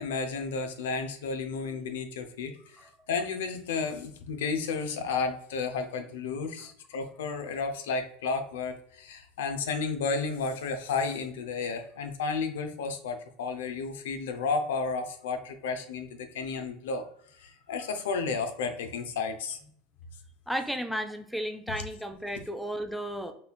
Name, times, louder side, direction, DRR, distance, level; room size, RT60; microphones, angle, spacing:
voice 1, 0.0-2.8 3.1-17.0 17.3-19.6, left 4 dB, 85° left, 8 dB, 0.5 m, -32 dB
voice 2, 20.5-23.3, equal, ahead, 7 dB, 0.4 m, -33 dB
5.2 x 2.3 x 2.2 m, 0.63 s
supercardioid pair, 110°, 0 cm